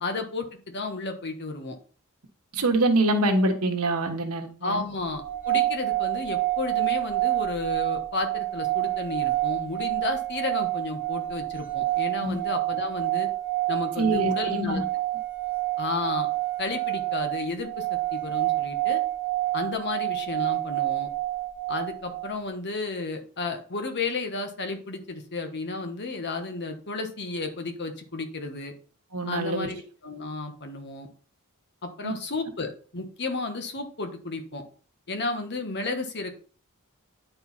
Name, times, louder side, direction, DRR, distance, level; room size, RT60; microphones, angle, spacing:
voice 1, 0.0-1.8 4.6-13.3 13.7-14.8 15.8-16.3 16.6-17.8 18.1-19.0 19.5-21.1 21.7-28.7 29.3-31.1 31.8-34.6 35.1-36.3, left 3 dB, 50° left, 6 dB, 1.3 m, -32 dB
voice 2, 2.5-4.8 12.2-12.4 14.0-14.8 29.1-29.7 32.0-32.1, right 2 dB, 90° right, 5 dB, 1.4 m, -25 dB
sound 1, 5.2-22.3, right 18 dB, 10° right, 1.5 m, -28 dB
9.3 x 4.6 x 4.2 m, 0.42 s
head